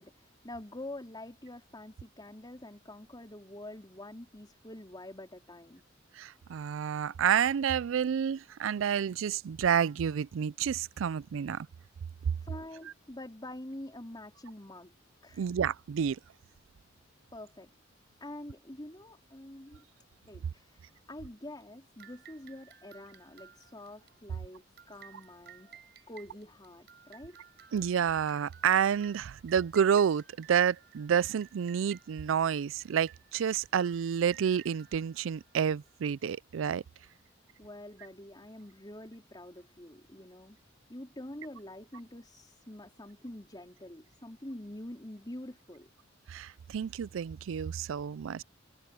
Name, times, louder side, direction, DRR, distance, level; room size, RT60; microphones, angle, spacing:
voice 1, 0.0-5.8 12.4-14.9 15.2-15.4 17.3-17.7 18.2-19.8 20.3-27.4 37.6-40.6 40.9-45.9, left 1 dB, 20° left, 3.9 m, -46 dB
voice 2, 6.1-11.7 15.4-16.2 27.7-36.8 46.3-48.4, right 8 dB, 80° right, 0.4 m, -29 dB
sound 1, 22.0-36.1, right 10 dB, 60° right, 4.8 m, -57 dB
head